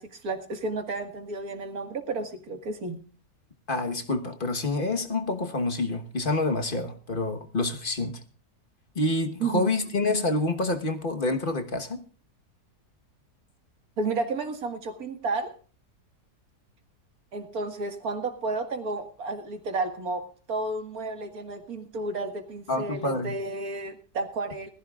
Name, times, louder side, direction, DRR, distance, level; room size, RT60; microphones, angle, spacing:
voice 1, 0.0-3.0 9.4-9.7 14.0-15.5 17.3-24.7, right 3 dB, 65° right, 2.2 m, -32 dB
voice 2, 3.7-8.2 8.9-12.0 22.7-23.3, left 2 dB, 35° left, 1.3 m, -27 dB
21.0 x 15.0 x 2.4 m
omnidirectional pair, 1.7 m